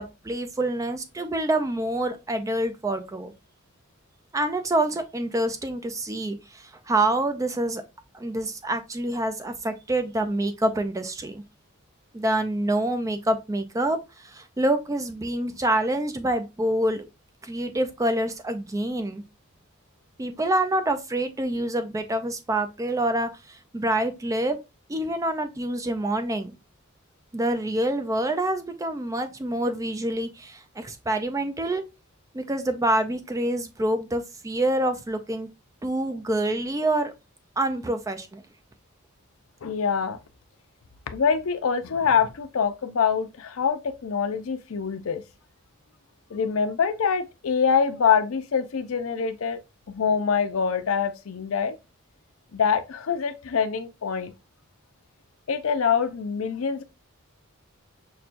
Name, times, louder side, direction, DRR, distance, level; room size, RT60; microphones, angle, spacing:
voice 1, 0.0-3.3 4.3-7.8 8.1-11.4 12.1-17.0 17.4-19.2 20.2-24.6 24.9-26.5 27.3-31.8 32.3-35.5 35.8-37.1 37.6-38.4, right 1 dB, 15° right, 0.4 m, -26 dB
voice 2, 39.6-40.2 41.1-45.2 46.3-49.6 49.9-51.8 52.5-54.3 55.5-56.8, left 6 dB, 70° left, 0.5 m, -25 dB
5.8 x 2.2 x 2.5 m
head